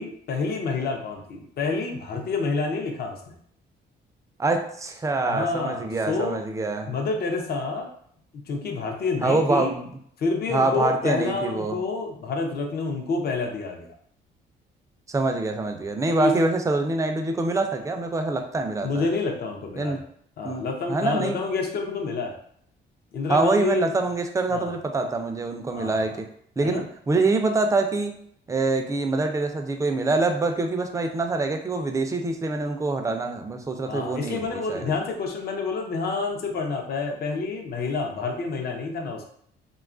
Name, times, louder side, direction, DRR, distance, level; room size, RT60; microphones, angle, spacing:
voice 1, 0.0-3.3 5.3-6.4 6.8-7.9 8.3-9.7 10.2-13.9 16.2-16.3 18.8-20.0 20.4-22.3 23.1-23.9 24.5-24.7 25.7-26.1 26.6-26.8 33.9-39.3, left 4 dB, 50° left, 2 dB, 0.5 m, -28 dB
voice 2, 4.4-6.9 9.2-9.9 10.5-11.8 15.1-19.0 19.8-20.0 20.4-21.4 23.3-26.3 26.6-28.2 28.5-34.9, right 3 dB, 15° right, 5 dB, 0.4 m, -25 dB
2.9 x 2.3 x 2.4 m, 0.64 s
cardioid pair, 90°, 20 cm